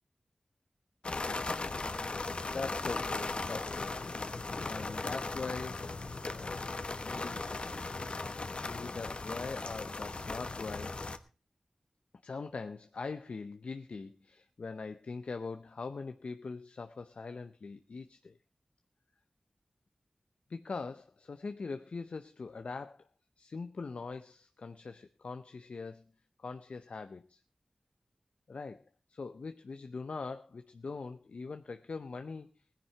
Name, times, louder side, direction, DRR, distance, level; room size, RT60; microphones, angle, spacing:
sound 1, 1.0-11.2, left 3 dB, 60° left, 1.1 m, -37 dB
voice 1, 2.5-6.6 7.0-7.5 8.7-11.0 12.2-18.4 20.5-23.1 23.4-26.0 26.4-27.4 28.5-28.8 29.1-32.5, left 4 dB, 80° left, 9 dB, 0.7 m, -42 dB
17.0 x 10.5 x 4.5 m, 0.34 s
wide cardioid pair, 60°, 2 cm